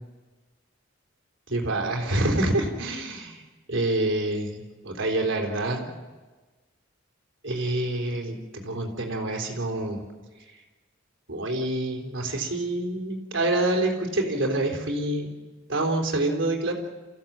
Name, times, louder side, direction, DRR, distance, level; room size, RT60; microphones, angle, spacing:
voice 1, 1.5-3.4 3.7-5.9 7.4-10.0 11.3-15.3 15.7-16.7, right 1 dB, 65° right, 2 dB, 3.8 m, -27 dB
29.0 x 15.5 x 7.4 m, 1.3 s
head